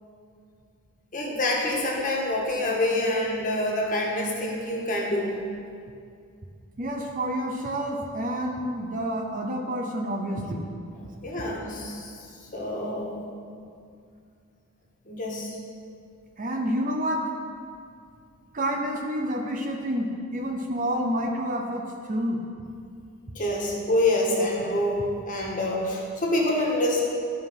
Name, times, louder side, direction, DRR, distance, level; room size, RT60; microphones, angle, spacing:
voice 1, 1.1-5.4 11.2-12.1 12.5-13.2 15.1-15.5 23.3-27.0, left 1 dB, 35° left, -3 dB, 1.5 m, -26 dB
voice 2, 6.8-10.6 16.4-17.3 18.5-22.4, equal, 35° right, 2 dB, 0.7 m, -29 dB
12.0 x 5.0 x 5.5 m, 2.3 s
head